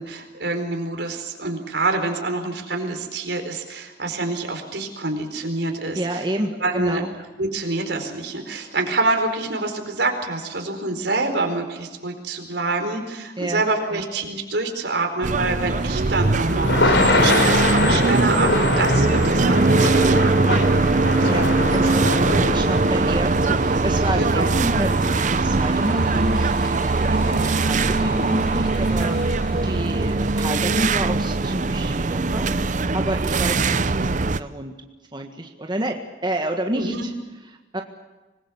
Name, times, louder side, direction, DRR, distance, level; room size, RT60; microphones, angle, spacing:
voice 1, 0.0-6.2 6.6-7.0 7.4-21.5 21.8-22.0 22.3-22.6 24.2-24.5 36.7-37.1, right 3 dB, 75° right, 5 dB, 4.5 m, -26 dB
voice 2, 5.9-7.1 13.4-13.6 13.9-14.0 21.2-26.7 27.0-34.7 35.1-35.9 36.2-37.1 37.7-37.8, right 1 dB, 25° right, 3 dB, 1.6 m, -29 dB
sound 1, 15.2-34.4, right 3 dB, 45° right, 0.7 m, -21 dB
Thunder / Rain, 15.7-29.9, left 2 dB, 80° left, 3.6 m, -26 dB
25.5 x 21.0 x 7.2 m, 1.2 s
head